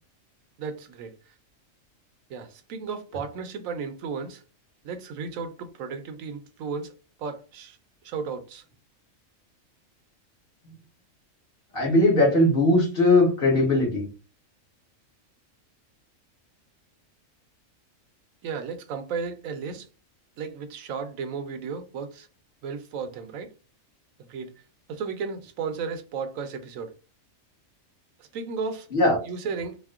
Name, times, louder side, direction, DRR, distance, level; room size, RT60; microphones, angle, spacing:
voice 1, 0.6-1.3 2.3-4.4 4.8-6.9 7.2-7.8 8.0-8.6 18.4-19.9 20.4-22.3 22.6-23.5 24.3-24.5 24.9-26.9 28.2-28.9 29.2-29.8, right 5 dB, 80° right, 1.0 m, -34 dB
voice 2, 11.7-14.1 28.9-29.2, left 1 dB, 45° left, 1.3 m, -20 dB
4.2 x 2.0 x 2.3 m
omnidirectional pair, 1.4 m